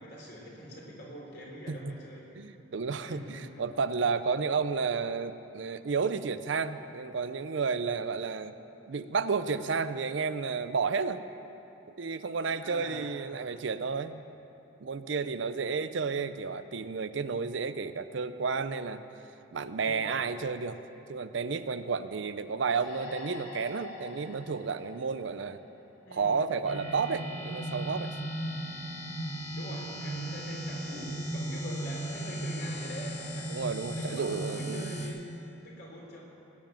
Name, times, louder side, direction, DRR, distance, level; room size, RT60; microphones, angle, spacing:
voice 1, 0.0-2.2 3.1-3.6 12.6-13.2 19.8-20.3 26.0-26.4 29.4-33.5 33.9-35.2 35.6-36.2, equal, 55° left, -2 dB, 3.6 m, -44 dB
voice 2, 2.4-8.5 8.9-11.2 12.0-14.2 14.8-19.0 19.5-20.8 21.1-25.6 26.1-28.1 33.5-34.9, right 5 dB, 65° right, 12 dB, 0.5 m, -32 dB
sound 1, 22.7-26.1, left 3 dB, 75° left, 2.5 m, -46 dB
sound 2, 26.6-35.1, right 1 dB, 5° left, 2.5 m, -36 dB
18.0 x 7.2 x 9.1 m, 2.9 s
head